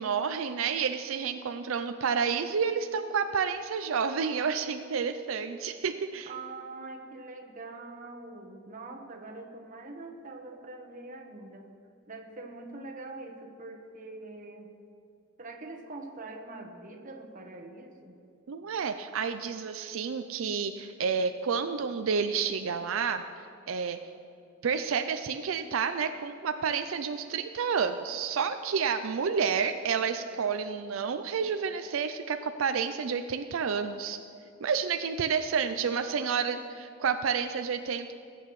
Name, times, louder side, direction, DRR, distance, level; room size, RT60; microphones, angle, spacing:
voice 1, 0.0-6.3 18.5-23.2 23.7-24.0 24.6-34.2 34.6-38.1, right 6 dB, 85° right, 8 dB, 0.5 m, -30 dB
voice 2, 6.3-11.6 12.1-14.7 15.4-18.1 35.5-36.7, right 2 dB, 40° right, 2 dB, 1.2 m, -44 dB
20.0 x 8.6 x 3.2 m, 2.5 s
head